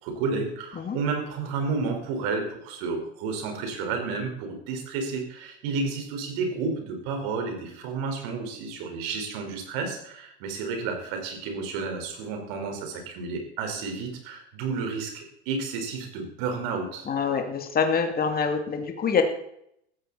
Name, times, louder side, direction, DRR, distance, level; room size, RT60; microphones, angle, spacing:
voice 1, 0.0-17.1, right 4 dB, 55° right, 4 dB, 4.7 m, -31 dB
voice 2, 17.1-19.2, left 6 dB, 25° left, 4 dB, 2.6 m, -25 dB
17.0 x 14.5 x 4.2 m, 0.72 s
figure-of-eight pair, 75°, 34 cm